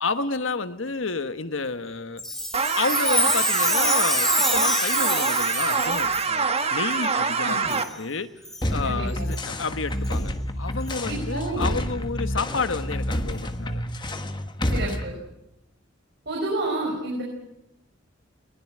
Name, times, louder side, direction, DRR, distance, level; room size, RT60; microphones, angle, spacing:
voice 1, 0.0-2.2 2.8-8.3 8.7-10.3 10.6-13.8, left 4 dB, 85° left, 10 dB, 1.4 m, -30 dB
Chime, 2.2-6.3 6.9-7.0 7.7-7.9 8.4-8.6 9.3-9.4 10.0-10.1 10.9-11.0, left 1 dB, ahead, 3.9 m, -26 dB
sound 1, 2.5-7.8, right 5 dB, 30° right, 1.5 m, -25 dB
voice 2, 7.4-7.7 8.8-9.3 11.1-11.7 14.7-15.2 16.3-17.2, right 2 dB, 60° right, -1 dB, 5.4 m, -29 dB
sound 2, 8.6-15.0, left 1 dB, 25° left, 1.4 m, -29 dB
21.0 x 21.0 x 8.7 m, 0.86 s
head